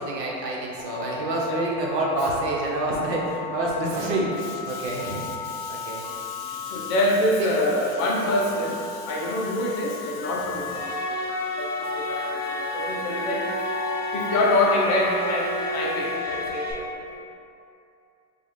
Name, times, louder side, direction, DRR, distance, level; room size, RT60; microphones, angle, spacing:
voice 1, 0.0-4.3 4.7-5.3 5.7-6.0, right 1 dB, 80° right, -3 dB, 1.0 m, -27 dB
Telephone, 0.8-16.5, left 7 dB, 90° left, 0.6 m, -36 dB
voice 2, 4.7-11.2 11.6-16.9, left 1 dB, 40° left, -2 dB, 0.5 m, -26 dB
sound 1, 10.7-16.7, equal, 15° right, 0.5 m, -31 dB
3.1 x 2.4 x 4.0 m, 2.6 s
hypercardioid pair, 110°, 49 cm